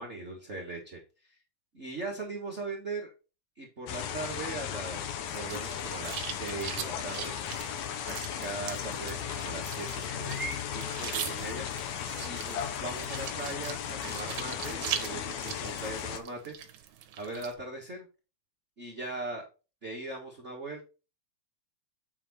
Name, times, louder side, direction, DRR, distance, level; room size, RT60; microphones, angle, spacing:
voice 1, 0.0-1.4 1.7-3.1 3.5-7.4 8.1-11.7 12.3-16.5 17.2-18.1 18.8-19.5 19.8-20.8, right 2 dB, 40° right, -2 dB, 1.0 m, -39 dB
sound 1, 3.9-16.2, left 9 dB, 70° left, 1.8 m, -36 dB
sound 2, 5.3-17.5, right 10 dB, 90° right, 2.8 m, -41 dB
8.9 x 4.8 x 4.2 m, 0.31 s
omnidirectional pair, 3.9 m